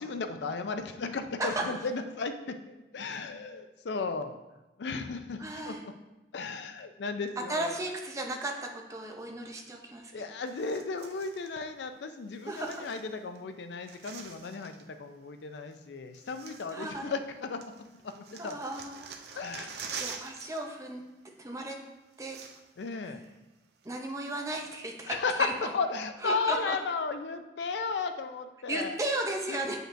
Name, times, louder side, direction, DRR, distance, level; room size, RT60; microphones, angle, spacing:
voice 1, 0.0-4.4 4.8-5.9 6.3-7.7 10.1-18.6 19.4-20.2 22.8-23.2 25.1-29.0 29.5-29.6, left 4 dB, 80° left, 8 dB, 0.4 m, -35 dB
voice 2, 5.4-5.9 7.5-10.1 12.5-12.9 16.7-17.1 18.4-19.4 20.0-21.0 21.4-21.8 22.2-22.4 23.8-25.7 26.2-26.8 28.7-29.8, right 1 dB, 20° right, 2 dB, 0.6 m, -35 dB
sound 1, 10.5-11.5 12.3-13.4 13.6-14.9 15.7-15.8 16.1-17.3 17.6-20.6 20.9-21.1 21.8-21.9 22.1-22.9 23.2-23.3 23.8-24.8 25.3-25.4, right 6 dB, 65° right, 0.5 m, -45 dB
7.5 x 5.2 x 2.6 m, 1.0 s
head